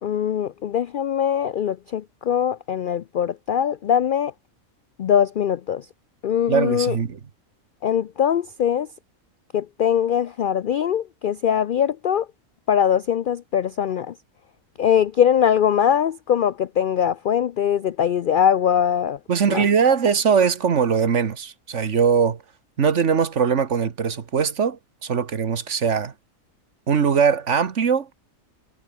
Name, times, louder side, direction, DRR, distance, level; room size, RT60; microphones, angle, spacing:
voice 1, 0.0-4.3 5.0-5.9 6.2-7.0 7.8-8.9 9.5-12.3 12.7-14.1 14.8-19.2 19.5-19.7, left 9 dB, 65° left, 0.5 m, -21 dB
voice 2, 6.5-7.2 19.3-22.4 22.8-26.1 26.9-28.1, right 6 dB, 60° right, 1.6 m, -21 dB
omnidirectional pair, 1.4 m